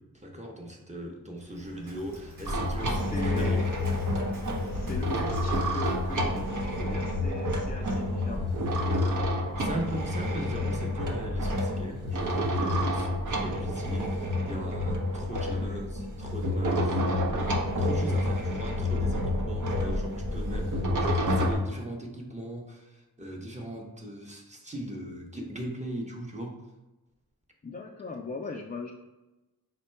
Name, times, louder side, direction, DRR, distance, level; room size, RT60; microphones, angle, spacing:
voice 1, 0.0-3.6 9.6-17.3 17.8-26.6, equal, 20° right, 0 dB, 0.8 m, -39 dB
Waves surf, 1.4-6.6, left 1 dB, 80° right, 1.2 m, -47 dB
sound 1, 2.4-21.5, left 1 dB, 55° right, 0.7 m, -29 dB
voice 2, 2.9-3.6 4.7-8.5 15.4-15.8 27.6-28.9, left 4 dB, 25° left, 0 dB, 0.3 m, -39 dB
3.6 x 2.2 x 4.3 m, 1.1 s
cardioid pair, 50°, 36 cm